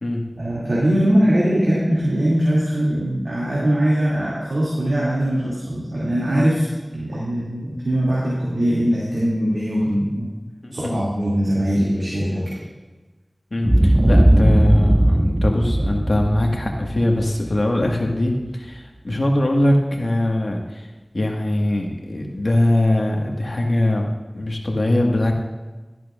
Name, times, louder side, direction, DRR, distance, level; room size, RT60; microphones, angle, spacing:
voice 1, 0.4-6.6 6.9-10.3 10.7-12.5 13.6-13.7 14.0-14.4, equal, 80° right, -7 dB, 2.5 m, -21 dB
voice 2, 10.6-11.0 13.5-20.9 21.1-24.1 24.3-25.3, left 1 dB, 65° left, 1 dB, 1.6 m, -21 dB
Boom, 13.6-17.9, right 1 dB, 25° right, 0.3 m, -18 dB
13.0 x 10.5 x 2.5 m, 1.2 s
wide cardioid pair, 40°, 0 cm